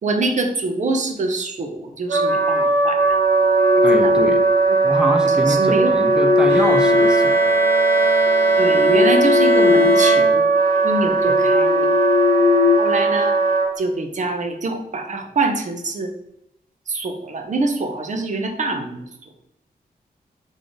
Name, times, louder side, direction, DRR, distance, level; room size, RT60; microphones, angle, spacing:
voice 1, 0.0-3.0 4.0-4.2 4.7-4.8 5.5-5.9 8.6-10.4 10.8-11.9 12.8-13.4 13.8-16.1 16.9-19.0, right 2 dB, 50° right, 4 dB, 0.8 m, -24 dB
Wind instrument woodwind instrument, 2.1-13.7, right 4 dB, 90° right, 1.0 m, -18 dB
sound 1, 3.2-4.7 5.7-7.8 8.3-10.1 10.4-10.7 11.2-13.5, left 6 dB, 75° left, 0.7 m, -21 dB
voice 2, 3.8-4.4 4.8-7.4 11.3-11.4, right 1 dB, 5° right, 5 dB, 0.6 m, -25 dB
Bowed string instrument, 6.5-10.9, left 2 dB, 15° left, 1.1 m, -26 dB
3.6 x 3.6 x 3.8 m, 0.79 s
wide cardioid pair, 115°, 16 cm